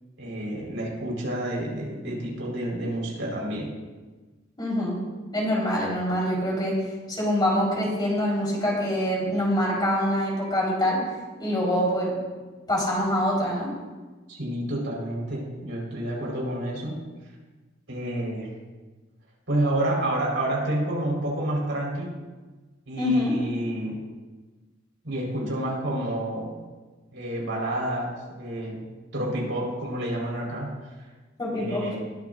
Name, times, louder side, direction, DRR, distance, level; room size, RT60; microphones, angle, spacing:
voice 1, 0.2-3.7 14.3-17.0 17.9-18.5 19.5-22.1 22.9-24.0 25.0-26.6 27.1-28.8 29.1-30.7 31.5-32.0, right 1 dB, 75° right, -3 dB, 4.8 m, -29 dB
voice 2, 4.6-5.0 5.3-6.8 7.1-11.0 11.4-12.1 12.7-13.7 23.0-23.3 31.4-31.9, equal, 25° left, -5 dB, 4.5 m, -25 dB
21.0 x 10.5 x 2.7 m, 1.3 s
head